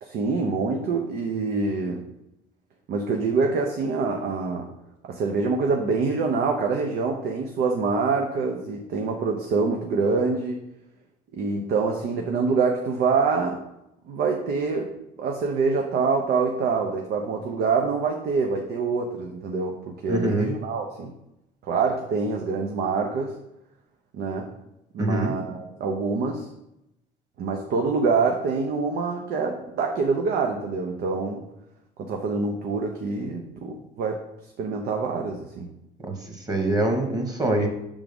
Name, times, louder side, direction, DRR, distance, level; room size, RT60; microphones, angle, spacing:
voice 1, 0.0-2.0 2.9-4.6 5.1-10.6 11.3-13.6 14.1-14.9 15.2-21.1 21.7-23.4 24.1-24.5 24.9-26.5 27.4-31.4 32.0-34.2 34.6-35.7, right 4 dB, 70° right, 2 dB, 0.8 m, -25 dB
voice 2, 20.1-20.5 25.0-25.3 36.0-37.7, right 1 dB, 20° right, 3 dB, 1.3 m, -24 dB
6.1 x 3.7 x 5.2 m, 0.85 s
cardioid pair, 110°, 17 cm